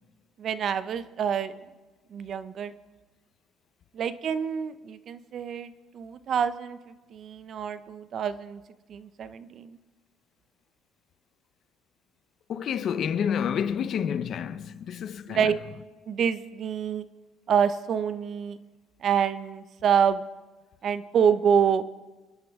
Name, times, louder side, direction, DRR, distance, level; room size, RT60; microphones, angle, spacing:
voice 1, 0.4-1.5 2.1-2.7 3.9-6.8 7.1-8.6 8.9-9.8 15.3-15.6 16.1-17.0 17.5-18.6 19.0-20.2 20.8-21.8, right 7 dB, 45° right, 0.7 m, -26 dB
voice 2, 12.5-15.6, left 8 dB, 50° left, 0.8 m, -29 dB
29.0 x 11.0 x 3.7 m
cardioid pair, 130°, 0 cm